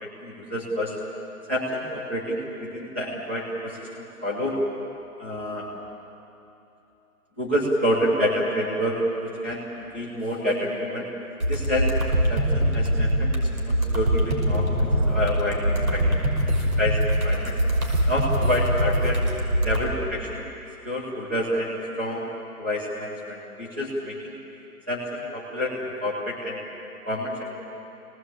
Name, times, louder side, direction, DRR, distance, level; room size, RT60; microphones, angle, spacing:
voice 1, 0.0-1.0 1.5-4.6 5.2-5.7 7.4-11.1 11.5-12.0 12.3-17.5 18.1-19.2 19.6-20.4 20.8-22.3 22.6-24.4 24.9-26.6 27.0-27.4, equal, 10° right, -6 dB, 1.1 m, -28 dB
sound 1, 11.4-19.8, equal, 80° right, 5.7 m, -23 dB
25.0 x 18.5 x 8.6 m, 2.9 s
hypercardioid pair, 180°, 45 cm